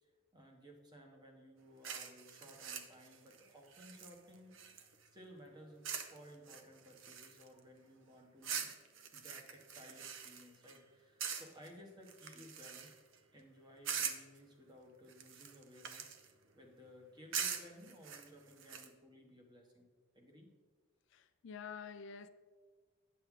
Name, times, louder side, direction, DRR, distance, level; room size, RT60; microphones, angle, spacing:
voice 1, 0.0-4.6 5.1-8.7 9.1-12.9 13.3-19.9 20.1-20.5, equal, 20° right, 1.2 m, -58 dB
sound 1, 1.8-5.1 5.8-6.2 6.5-7.6 8.4-10.8 11.2-11.7 12.1-13.1 13.8-14.4 15.1-16.3 17.3-18.9, right 7 dB, 65° right, 0.7 m, -43 dB
voice 2, 21.1-22.3, left 6 dB, 60° left, 0.3 m, -48 dB
9.3 x 6.6 x 3.7 m
head